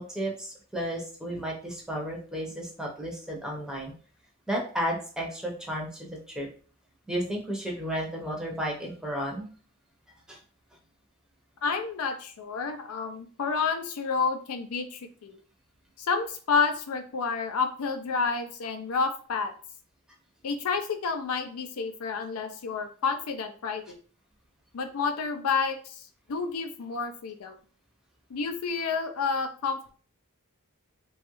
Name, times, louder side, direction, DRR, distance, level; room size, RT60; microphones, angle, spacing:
voice 1, 0.0-3.9 4.5-6.5 7.1-9.5 10.3-10.4, equal, 5° right, -2 dB, 0.6 m, -33 dB
voice 2, 11.6-15.4 16.0-19.5 20.4-24.0 24.7-27.5 28.3-29.9, left 5 dB, 80° left, 7 dB, 0.5 m, -30 dB
3.0 x 2.3 x 3.0 m, 0.42 s
head